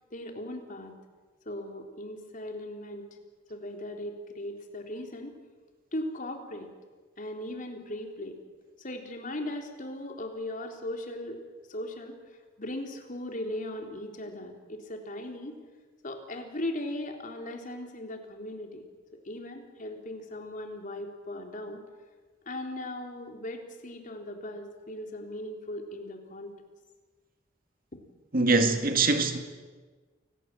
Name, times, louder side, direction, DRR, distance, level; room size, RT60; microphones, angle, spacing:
voice 1, 0.1-0.9 1.5-3.1 3.5-5.4 5.9-6.7 7.2-8.4 8.8-11.4 11.7-12.2 12.6-15.6 16.0-18.8 19.2-21.8 22.5-26.5, left 1 dB, 40° left, 3.7 m, -38 dB
voice 2, 28.3-29.4, right 3 dB, 50° right, 2.2 m, -23 dB
28.5 x 19.0 x 9.1 m
head